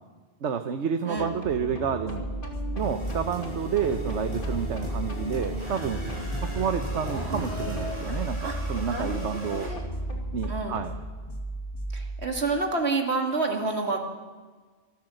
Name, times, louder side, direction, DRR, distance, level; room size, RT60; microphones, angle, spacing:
voice 1, 0.4-2.3 2.7-6.0 6.4-9.7 10.3-10.9, right 7 dB, 90° right, 8 dB, 1.3 m, -30 dB
sound 1, 1.2-11.0, equal, 50° left, 2.9 m, -38 dB
sound 2, 2.0-12.2, right 1 dB, 20° left, 1.7 m, -35 dB
sound 3, 2.8-9.7, equal, 25° right, 7.9 m, -38 dB
voice 2, 6.9-8.6 8.9-9.2 9.5-9.8 10.5-10.8 11.9-14.0, right 3 dB, 70° right, 2 dB, 2.7 m, -30 dB
25.0 x 13.5 x 7.8 m, 1.4 s
omnidirectional pair, 1.1 m